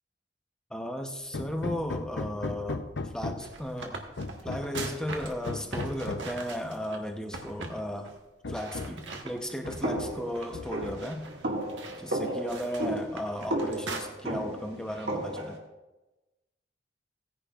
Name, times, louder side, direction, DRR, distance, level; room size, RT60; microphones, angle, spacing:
voice 1, 0.7-4.0 4.4-8.1 8.5-11.2 12.0-15.6, equal, 5° left, 4 dB, 0.8 m, -35 dB
Hammer, 1.3-3.6 4.2-5.0 5.5-6.4 7.4-7.5 7.9-8.0 8.4-9.1 9.6-10.3 10.5-11.2, left 3 dB, 70° left, 0.7 m, -37 dB
sound 1, 3.2-7.0 7.3-7.8 8.0-8.2 8.5-10.0 10.3-14.0, right 3 dB, 85° right, 1.4 m, -41 dB
sound 2, 9.8-15.6, right 1 dB, 65° right, 1.9 m, -33 dB
17.0 x 10.0 x 2.4 m, 1.1 s
head